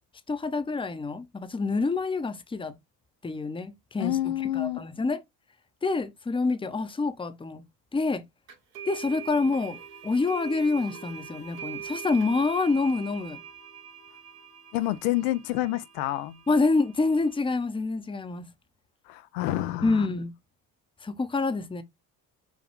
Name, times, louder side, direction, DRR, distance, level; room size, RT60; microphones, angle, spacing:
voice 1, 0.3-2.7 3.2-5.2 5.8-7.6 7.9-8.2 8.9-9.8 10.0-13.4 16.5-18.5 19.8-20.3 21.0-21.8, left 3 dB, 10° left, 0.6 m, -27 dB
voice 2, 4.0-4.8 14.7-16.4 19.1-20.1, left 15 dB, 85° left, 0.6 m, -28 dB
sound 1, 8.5-17.3, right 8 dB, 85° right, 1.8 m, -43 dB
5.3 x 2.3 x 3.1 m
hypercardioid pair, 65°, 49 cm